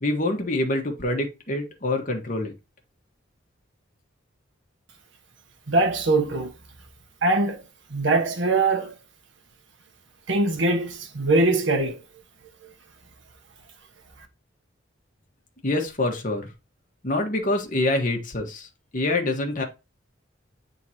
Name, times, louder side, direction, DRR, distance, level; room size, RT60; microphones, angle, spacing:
voice 1, 0.0-2.5 15.6-16.5 17.0-19.6, left 2 dB, 45° left, 1.5 m, -26 dB
voice 2, 5.7-6.5 7.2-7.6 7.9-9.0 10.3-12.0, right 2 dB, 70° right, 1.3 m, -22 dB
9.2 x 3.8 x 2.8 m
head